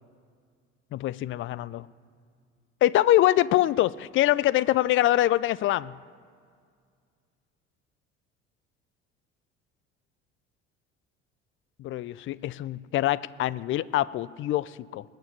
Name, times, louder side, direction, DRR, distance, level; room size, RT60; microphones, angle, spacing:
voice 1, 0.9-1.9 2.8-5.9 11.8-15.0, left 14 dB, 35° left, 20 dB, 0.5 m, -24 dB
20.0 x 7.4 x 6.7 m, 2.1 s
figure-of-eight pair, 60°, 35 cm